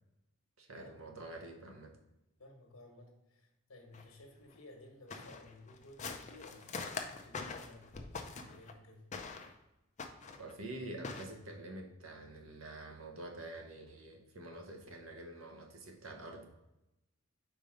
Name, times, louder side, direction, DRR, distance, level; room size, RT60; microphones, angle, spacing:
voice 1, 0.6-2.0 10.4-16.5, right 1 dB, 70° right, 3 dB, 1.0 m, -47 dB
voice 2, 2.4-9.1, left 2 dB, 70° left, 2 dB, 1.3 m, -56 dB
sound 1, 3.9-4.0 4.5-4.6 5.1-8.7 9.1-9.5 10.0-10.5 11.0-11.2, left 4 dB, 35° left, 0.5 m, -43 dB
5.0 x 4.0 x 5.1 m, 0.91 s
head